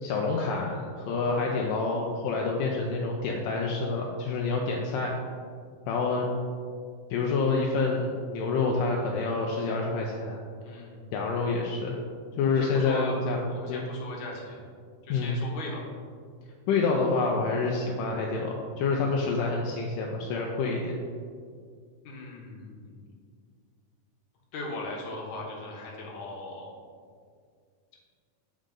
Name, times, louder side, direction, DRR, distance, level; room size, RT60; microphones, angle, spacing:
voice 1, 0.0-5.1 5.9-6.3 7.1-10.4 11.1-12.0 12.4-13.8 15.1-15.4 16.7-20.9, left 4 dB, 80° left, -1 dB, 2.1 m, -27 dB
voice 2, 10.6-11.0 12.4-13.2 13.5-14.6 15.0-15.8 22.0-23.1 24.5-26.7 27.9-28.0, left 2 dB, 65° left, -2 dB, 2.4 m, -39 dB
7.5 x 5.1 x 3.7 m, 2.1 s
omnidirectional pair, 4.0 m